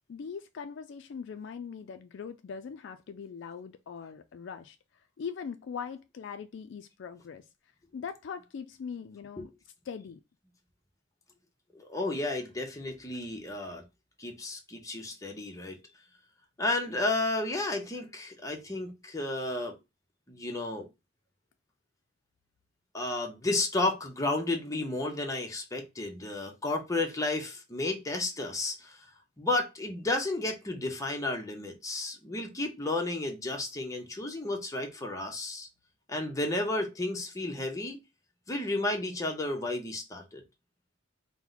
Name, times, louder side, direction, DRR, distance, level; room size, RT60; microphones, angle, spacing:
voice 1, 0.1-4.8 5.2-7.4 7.9-9.5 9.9-10.2, left 6 dB, 65° left, 0.4 m, -41 dB
voice 2, 11.7-13.8 14.2-15.8 16.6-19.8 20.3-20.9 22.9-29.1 29.4-35.7 36.1-38.0 38.5-40.4, left 2 dB, 15° left, 0.8 m, -32 dB
4.4 x 2.1 x 3.8 m
head